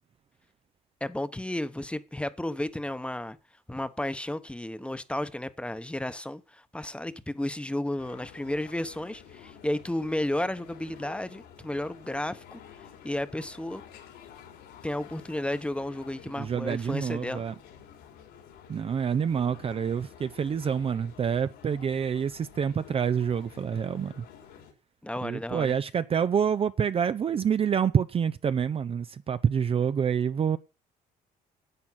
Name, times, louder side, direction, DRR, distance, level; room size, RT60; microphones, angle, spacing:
voice 1, 1.0-3.4 3.7-12.6 13.0-13.8 14.8-17.4 25.0-25.7, left 1 dB, 5° left, 1.0 m, -33 dB
sound 1, 8.0-24.7, left 8 dB, 85° left, 4.0 m, -50 dB
voice 2, 16.4-17.5 18.7-24.2 25.2-30.6, right 7 dB, 35° right, 0.6 m, -27 dB
11.0 x 8.6 x 5.7 m
cardioid pair, 110°, 17 cm